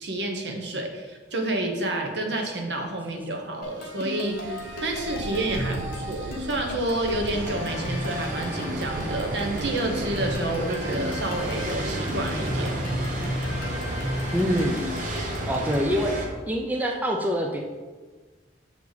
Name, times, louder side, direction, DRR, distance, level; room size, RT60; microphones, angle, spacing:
voice 1, 0.0-12.7, right 1 dB, 65° right, 2 dB, 1.1 m, -29 dB
sound 1, 3.6-15.9, left 1 dB, 50° left, 1.3 m, -35 dB
sound 2, 4.0-15.8, right 3 dB, 85° right, 0.4 m, -39 dB
sound 3, 7.3-16.3, right 1 dB, 45° right, 1.0 m, -32 dB
voice 2, 14.3-14.9 15.5-16.1 16.5-17.6, equal, 10° right, 1 dB, 0.5 m, -25 dB
6.9 x 4.8 x 4.0 m, 1.3 s
head